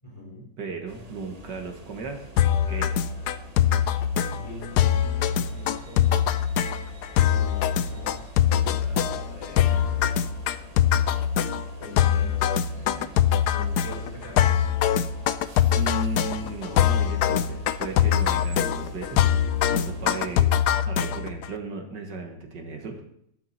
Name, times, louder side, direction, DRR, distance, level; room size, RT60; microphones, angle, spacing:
voice 1, 0.0-0.4 4.3-6.2 7.3-10.1 11.8-14.5, left 1 dB, 20° left, -3 dB, 4.7 m, -44 dB
voice 2, 0.6-2.3 2.7-3.0 15.8-19.2 19.7-20.5 20.8-23.0, right 4 dB, 70° right, 3 dB, 2.1 m, -35 dB
sound 1, 0.9-20.4, right 1 dB, 25° right, 0.9 m, -46 dB
sound 2, 2.4-21.5, left 10 dB, 70° left, 1.1 m, -23 dB
13.0 x 11.5 x 4.3 m, 0.70 s
omnidirectional pair, 2.0 m